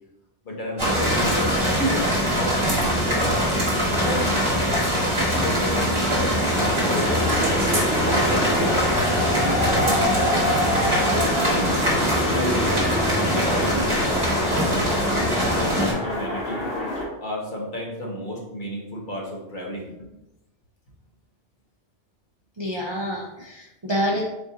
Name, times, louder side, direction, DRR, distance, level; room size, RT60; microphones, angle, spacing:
voice 1, 0.4-2.1 2.7-4.7 5.3-7.3 8.0-8.7 9.3-11.9 12.2-14.0 15.1-16.7 17.2-20.1, equal, 45° left, -2 dB, 1.0 m, -32 dB
sound 1, 0.8-15.9, equal, 25° right, 1.3 m, -23 dB
sound 2, 6.4-17.0, equal, 85° left, 1.7 m, -26 dB
voice 2, 22.6-24.2, equal, 45° right, -2 dB, 0.3 m, -27 dB
4.2 x 2.5 x 3.8 m, 0.93 s
omnidirectional pair, 1.2 m